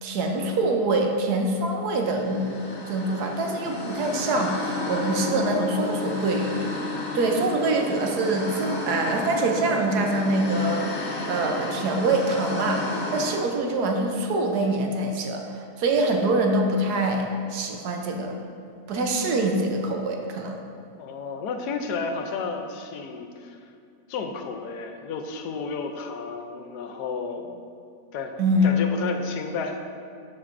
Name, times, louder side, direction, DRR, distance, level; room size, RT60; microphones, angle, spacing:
voice 1, 0.0-2.6 2.9-6.7 7.1-11.0 11.3-15.4 15.8-18.3 18.9-20.6 28.4-28.7, right 2 dB, 75° right, 2 dB, 1.3 m, -24 dB
sound 1, 2.1-13.3, left 2 dB, 45° left, 1.1 m, -32 dB
voice 2, 20.9-23.6 24.1-27.6 28.1-28.4 28.6-29.9, left 4 dB, 80° left, 5 dB, 1.2 m, -32 dB
12.0 x 4.7 x 2.5 m, 2.4 s
omnidirectional pair, 1.7 m